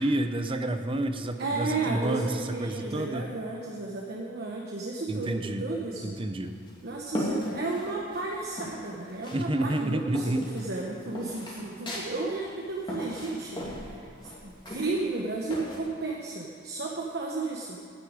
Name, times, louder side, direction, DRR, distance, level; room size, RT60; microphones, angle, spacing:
voice 1, 0.0-3.3 5.1-5.7 6.0-6.5 9.3-10.5, right 1 dB, 25° right, 8 dB, 0.7 m, -29 dB
voice 2, 1.4-6.1 6.8-14.0 14.4-17.8, right 3 dB, 55° right, -2 dB, 1.1 m, -33 dB
sound 1, 6.4-8.3 8.6-9.4 9.7-15.8, left 1 dB, 25° left, 2.5 m, -37 dB
10.5 x 8.4 x 8.8 m, 2.3 s
head